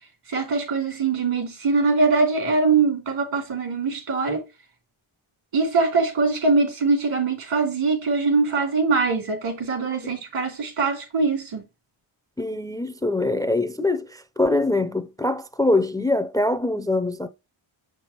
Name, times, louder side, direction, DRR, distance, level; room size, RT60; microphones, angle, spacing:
voice 1, 0.3-4.4 5.5-11.6, right 4 dB, 80° right, 3.0 m, -22 dB
voice 2, 12.4-17.3, left 2 dB, 10° left, 0.4 m, -23 dB
7.6 x 6.0 x 2.9 m
wide cardioid pair, 120°, 50 cm